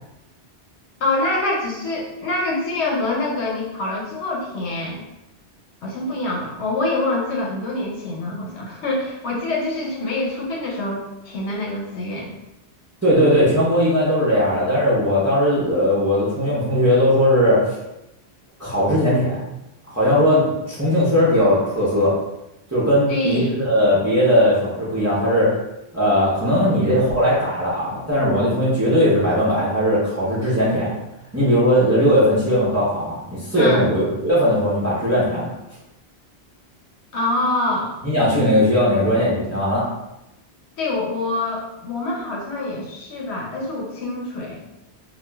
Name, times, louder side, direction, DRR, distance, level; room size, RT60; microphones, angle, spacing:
voice 1, 1.0-5.0 5.8-12.3 23.1-23.5 33.6-33.9 37.1-37.9 40.8-44.6, left 2 dB, 80° left, -2 dB, 0.8 m, -25 dB
voice 2, 13.0-17.8 18.6-19.4 19.9-22.1 22.7-25.5 25.9-30.9 31.3-35.5 38.0-39.8, equal, 20° right, -9 dB, 0.5 m, -18 dB
2.9 x 2.2 x 2.2 m, 0.92 s
omnidirectional pair, 1.1 m